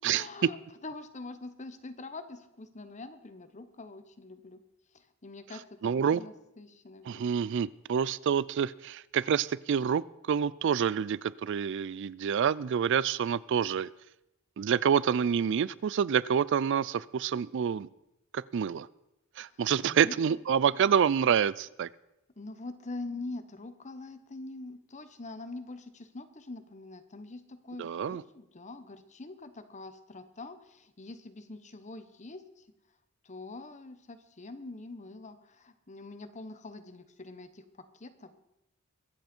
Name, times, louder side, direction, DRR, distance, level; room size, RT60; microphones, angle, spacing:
voice 1, 0.1-4.6 4.9-7.2 19.5-20.4 20.7-20.9 22.4-32.6 33.2-38.3, left 2 dB, 35° left, 10 dB, 1.0 m, -44 dB
voice 2, 5.8-6.2 7.1-13.9 14.6-17.9 18.3-18.9 19.4-21.9 27.8-28.2, right 7 dB, 60° right, 21 dB, 0.4 m, -27 dB
22.5 x 8.1 x 4.4 m, 0.86 s
head